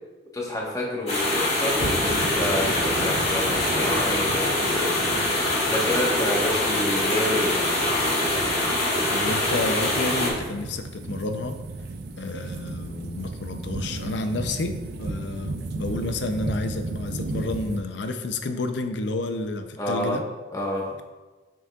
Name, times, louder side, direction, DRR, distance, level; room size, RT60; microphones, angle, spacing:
voice 1, 0.3-4.9 5.7-7.7 19.8-20.2 20.5-20.9, left 1 dB, 20° left, -3 dB, 1.2 m, -28 dB
sound 1, 1.1-10.3, left 1 dB, 35° left, 1.7 m, -24 dB
sound 2, 1.8-17.8, right 2 dB, 60° right, 0.5 m, -35 dB
voice 2, 9.1-11.6 12.2-20.2, left 2 dB, 65° left, 8 dB, 0.5 m, -30 dB
7.1 x 6.0 x 2.3 m, 1.2 s
head